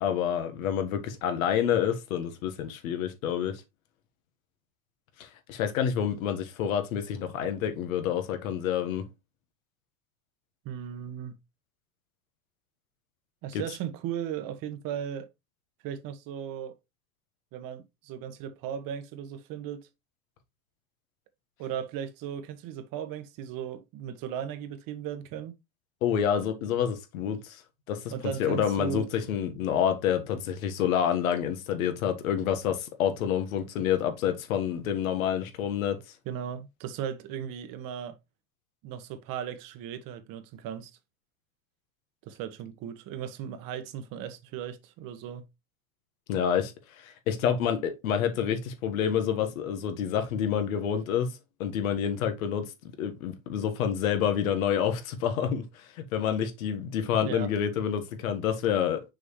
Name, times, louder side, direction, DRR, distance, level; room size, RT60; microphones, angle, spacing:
voice 1, 0.0-3.6 5.2-9.1 13.5-13.6 26.0-27.6 27.9-36.0 46.3-51.3 51.6-52.7 53.0-59.0, left 8 dB, 80° left, 1.6 m, -28 dB
voice 2, 10.6-11.4 13.4-15.3 15.8-16.7 17.5-19.9 21.6-25.5 28.1-29.1 36.2-38.2 38.8-40.9 42.2-45.4 57.2-57.5, right 9 dB, 55° right, 1.3 m, -36 dB
6.3 x 4.8 x 3.2 m
hypercardioid pair, 95°, 41 cm